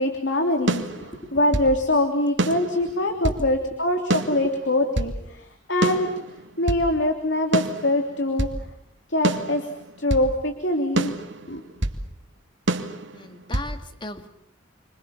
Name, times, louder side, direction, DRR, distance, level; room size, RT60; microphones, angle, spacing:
voice 1, 0.0-6.1 6.6-8.5 9.1-9.6 10.0-11.1 11.5-11.6, left 1 dB, 65° left, 4 dB, 3.3 m, -23 dB
sound 1, 0.7-1.8 2.4-3.5 4.1-5.2 5.8-6.9 7.5-8.6 9.2-10.3 11.0-12.0 12.7-13.7, right 2 dB, 65° right, 2.5 m, -27 dB
voice 2, 1.0-1.3 3.3-3.4 4.3-4.5 13.1-14.3, left 1 dB, 25° left, 8 dB, 2.2 m, -37 dB
29.5 x 26.0 x 7.2 m, 0.68 s
head